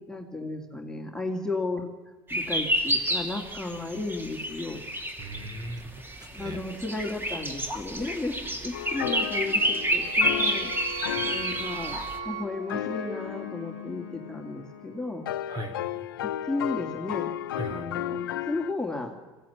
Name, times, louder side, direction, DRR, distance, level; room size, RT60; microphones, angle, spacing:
voice 1, 0.0-1.9 2.3-4.8 6.3-10.7 11.2-15.2 16.5-17.3 17.7-19.2, left 2 dB, 5° left, 1 dB, 2.3 m, -34 dB
sound 1, 2.3-12.2, equal, 20° right, 2.8 m, -29 dB
voice 2, 5.2-6.6 11.1-11.4 15.5-15.7 17.5-17.8, right 1 dB, 35° right, 7 dB, 3.3 m, -38 dB
sound 2, 8.7-18.7, left 12 dB, 85° left, 0.7 m, -35 dB
sound 3, 9.5-13.9, right 10 dB, 65° right, 1.1 m, -39 dB
21.0 x 16.0 x 8.6 m, 1.2 s
hypercardioid pair, 75°, 11 cm